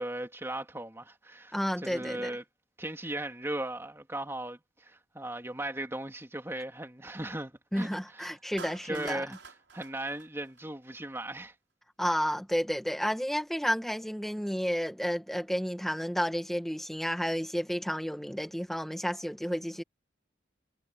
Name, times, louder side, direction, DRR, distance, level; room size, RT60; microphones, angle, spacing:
voice 1, 0.0-2.4 2.8-8.3 8.8-11.5, right 1 dB, 15° right, 2.8 m, -37 dB
voice 2, 1.5-2.3 7.7-9.2 12.0-19.8, equal, ahead, 2.2 m, -31 dB
Clapping, 8.6-11.0, right 5 dB, 85° right, 6.6 m, -47 dB
head